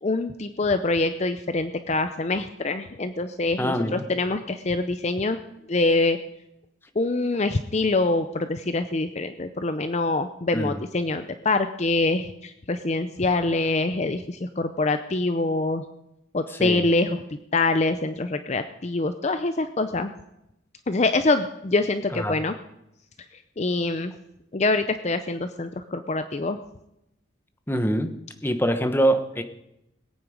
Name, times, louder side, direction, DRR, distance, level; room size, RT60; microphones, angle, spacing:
voice 1, 0.0-5.4 5.7-6.2 7.0-15.8 16.3-20.1 20.9-22.5 23.3-24.1 24.5-26.6, left 2 dB, 35° left, 9 dB, 0.5 m, -25 dB
voice 2, 3.6-4.1 10.5-10.8 16.5-16.9 22.1-22.4 27.7-28.1 28.4-29.4, right 1 dB, 10° left, 8 dB, 0.9 m, -24 dB
20.5 x 9.1 x 5.0 m, 0.86 s
head